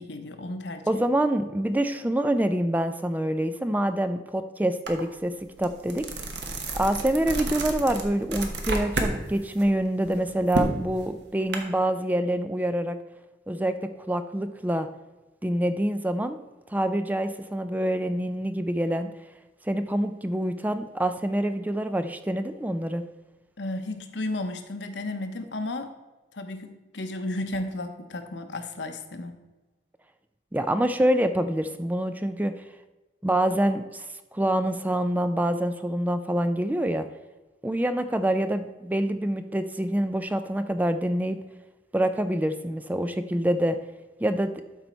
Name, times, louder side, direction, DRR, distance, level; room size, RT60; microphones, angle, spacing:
voice 1, 0.0-1.0 23.6-25.9 26.3-29.4, left 2 dB, 85° left, 7 dB, 0.9 m, -33 dB
voice 2, 0.9-6.3 6.7-13.0 13.5-14.9 15.4-16.4 16.7-19.1 19.7-23.0 30.5-32.6 33.2-34.1 34.3-37.0 37.6-41.4 41.9-43.8 44.2-44.5, right 1 dB, 10° right, 10 dB, 0.4 m, -26 dB
sound 1, 4.9-5.0 5.4-9.2 9.5-11.6, right 2 dB, 75° right, 1.2 m, -30 dB
12.0 x 4.1 x 4.4 m, 1.1 s
head